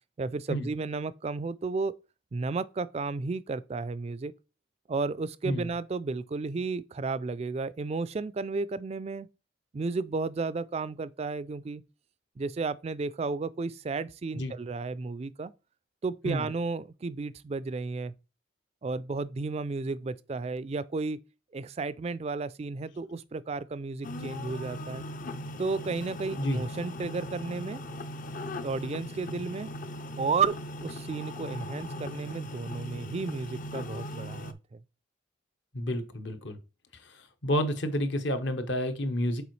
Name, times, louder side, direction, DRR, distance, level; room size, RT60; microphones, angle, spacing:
voice 1, 0.2-1.9 2.3-4.3 4.9-9.3 9.7-11.8 12.4-15.5 16.0-18.1 18.8-21.2 21.5-25.0 25.6-27.8 28.6-29.7 30.2-34.8, right 4 dB, 30° right, 0.3 m, -33 dB
sound 1, 24.0-34.5, left 1 dB, 40° left, 0.5 m, -39 dB
voice 2, 35.7-36.6 37.4-39.4, equal, 65° left, 1.0 m, -29 dB
6.9 x 4.5 x 3.1 m
head